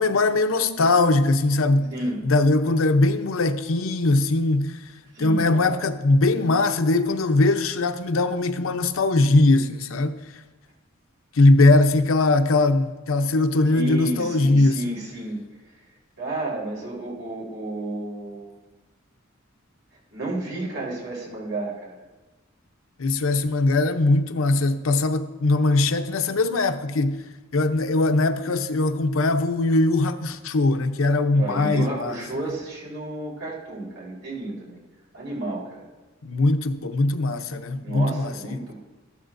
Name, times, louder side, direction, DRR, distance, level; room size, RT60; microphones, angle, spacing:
voice 1, 0.0-1.9 2.2-4.8 5.2-10.3 11.3-14.8 23.0-27.2 27.5-32.2 36.2-38.7, left 2 dB, 80° left, 0.7 m, -21 dB
voice 2, 5.1-5.9 13.7-15.4 16.2-18.6 20.1-22.0 31.3-34.8 35.1-35.9 37.8-38.7, right 1 dB, 80° right, 3.9 m, -31 dB
13.5 x 12.0 x 2.6 m
head